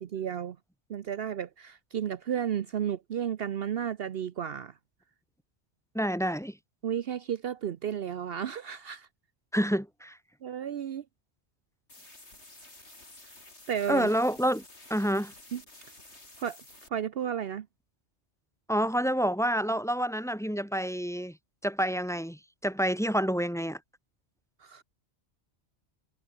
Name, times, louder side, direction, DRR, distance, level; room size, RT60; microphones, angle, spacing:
voice 1, 0.0-0.6 0.9-4.7 6.8-9.1 10.4-11.0 13.7-14.1 15.5-15.6 16.4-16.6 16.9-17.7 24.6-24.8, right 9 dB, 60° right, 0.9 m, -33 dB
voice 2, 5.9-6.6 9.5-10.2 13.9-14.6 14.9-15.3 18.7-21.4 21.6-23.8, equal, ahead, 2.2 m, -28 dB
sound 1, 11.9-16.9, left 2 dB, 75° left, 5.9 m, -52 dB
omnidirectional pair, 1.2 m